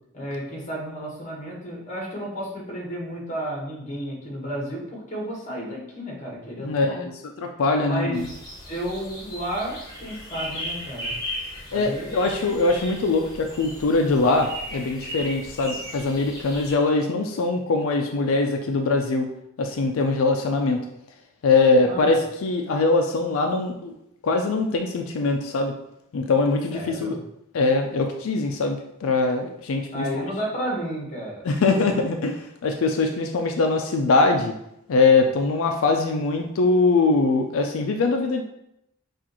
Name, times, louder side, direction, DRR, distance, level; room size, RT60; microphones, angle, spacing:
voice 1, 0.1-7.0 7.8-8.3 8.7-11.1 11.7-12.2 12.5-12.6 21.8-22.1 26.7-27.2 29.9-31.9, equal, 35° left, -2 dB, 1.3 m, -32 dB
voice 2, 6.6-7.1 7.4-8.3 11.7-19.3 19.6-20.8 21.4-23.9 24.2-25.7 26.1-27.2 27.5-30.1 31.4-34.6 34.9-38.4, left 3 dB, 90° left, 3 dB, 0.4 m, -22 dB
sound 1, 8.1-16.7, equal, 20° left, 1.5 m, -37 dB
5.9 x 2.5 x 3.0 m, 0.80 s
head